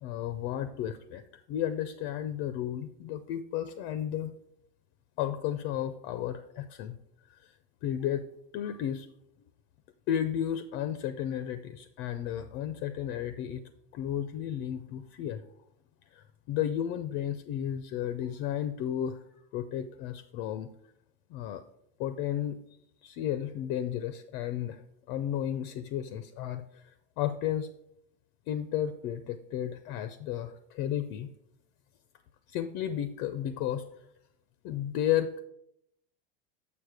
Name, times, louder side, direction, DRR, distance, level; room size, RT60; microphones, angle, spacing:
voice 1, 0.0-4.3 5.2-7.0 7.3-7.5 7.8-8.2 8.5-9.1 10.1-13.6 13.9-15.4 16.1-19.2 19.5-20.7 21.3-21.6 22.0-22.6 23.0-24.8 25.1-26.8 27.2-27.7 28.5-31.3 32.5-33.8 34.6-35.4, left 10 dB, 40° left, 11 dB, 0.4 m, -33 dB
7.0 x 5.0 x 4.7 m, 0.77 s
supercardioid pair, 135°, 29 cm